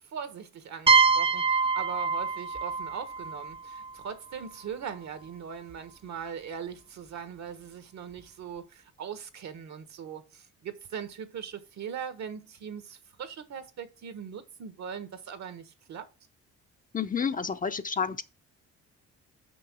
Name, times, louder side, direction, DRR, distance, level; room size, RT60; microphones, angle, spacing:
voice 1, 0.0-16.1, right 7 dB, 65° right, 1.4 m, -40 dB
sound 1, 0.9-4.5, right 5 dB, 20° right, 0.5 m, -25 dB
voice 2, 16.9-18.2, left 6 dB, 30° left, 0.6 m, -30 dB
6.2 x 5.6 x 6.2 m
cardioid pair, 90°, 30 cm